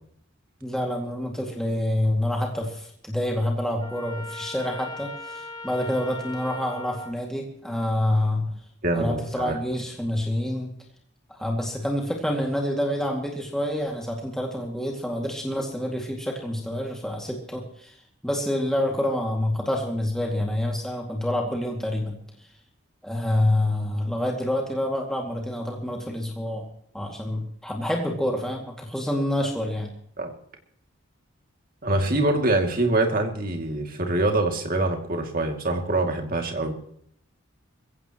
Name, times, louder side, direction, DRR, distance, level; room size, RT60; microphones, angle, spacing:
voice 1, 0.6-8.6 8.9-10.7 11.3-18.0 18.2-22.2 22.4-22.5 23.0-26.7 26.9-29.9, left 1 dB, ahead, 0 dB, 2.2 m, -27 dB
Trumpet, 3.8-7.2, left 2 dB, 20° left, 1.2 m, -39 dB
voice 2, 8.8-9.6 30.2-30.3 31.8-36.7, right 2 dB, 40° right, 3 dB, 2.4 m, -24 dB
23.0 x 16.0 x 3.0 m, 0.64 s
head